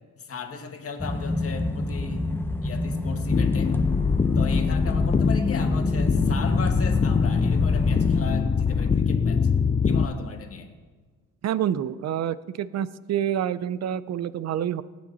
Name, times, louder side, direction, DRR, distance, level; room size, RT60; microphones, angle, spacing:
voice 1, 0.2-2.3 2.6-3.7 4.3-9.5 9.8-10.7, left 4 dB, 50° left, 4 dB, 1.9 m, -36 dB
sound 1, 1.0-8.3, left 2 dB, 5° left, 1.0 m, -28 dB
sound 2, 3.3-10.1, left 5 dB, 25° left, 0.5 m, -23 dB
voice 2, 11.4-14.8, right 10 dB, 60° right, 17 dB, 0.6 m, -27 dB
18.0 x 7.7 x 4.1 m, 1.4 s
cardioid pair, 90°, 30 cm